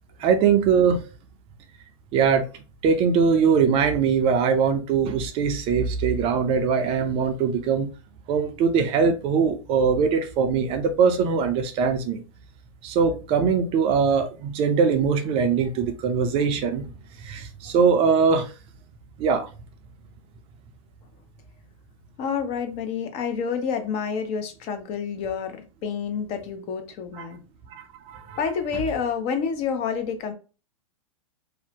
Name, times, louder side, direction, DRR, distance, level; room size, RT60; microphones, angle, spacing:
voice 1, 0.2-1.0 2.1-2.4 2.8-7.9 8.3-12.2 12.8-16.8 17.3-18.5 19.2-19.5 27.2-27.3 28.1-28.4, right 6 dB, 35° right, 0.4 m, -21 dB
voice 2, 22.2-27.4 28.4-30.3, left 6 dB, 35° left, 0.5 m, -28 dB
2.6 x 2.0 x 2.8 m
hypercardioid pair, 110°, 17 cm